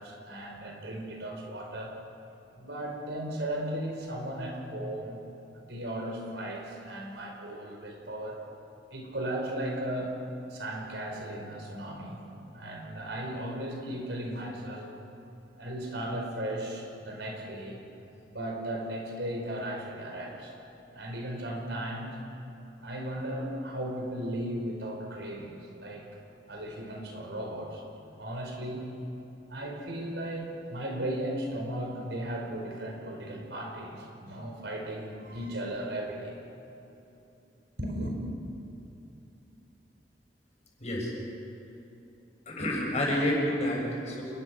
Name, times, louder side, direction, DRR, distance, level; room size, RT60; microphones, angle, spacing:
voice 1, 0.0-2.0 2.5-5.2 5.5-8.4 8.9-10.2 10.5-12.2 12.5-14.9 15.6-17.8 18.3-20.5 20.9-22.2 22.8-26.2 26.5-27.8 28.2-28.9 29.5-36.3 37.8-38.2, right 1 dB, 85° right, 1 dB, 5.1 m, -36 dB
voice 2, 40.8-41.1 42.5-44.2, left 1 dB, 40° left, -2 dB, 7.1 m, -29 dB
28.0 x 22.0 x 6.2 m, 2.9 s
head